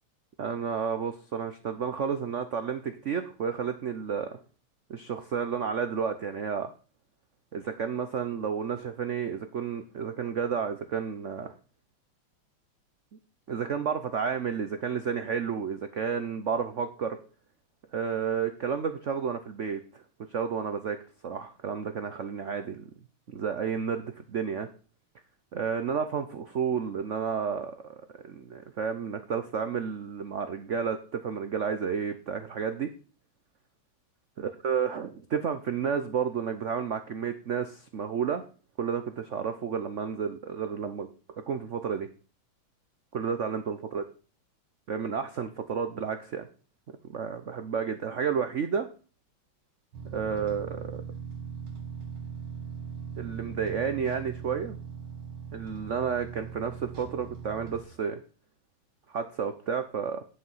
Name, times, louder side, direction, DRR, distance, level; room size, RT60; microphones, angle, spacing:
voice 1, 0.4-4.4 4.9-6.7 7.5-11.5 13.5-17.2 17.9-20.0 20.3-21.0 21.2-22.9 23.3-24.7 25.5-32.9 34.4-38.4 38.8-41.1 41.5-42.1 43.1-44.0 44.9-46.5 47.0-48.9 50.1-51.0 53.2-54.8 55.5-58.2 59.1-60.2, right 6 dB, 85° right, 9 dB, 0.6 m, -31 dB
sound 1, 49.9-57.8, right 6 dB, 65° right, 2.3 m, -40 dB
8.8 x 7.9 x 5.6 m, 0.38 s
omnidirectional pair, 2.4 m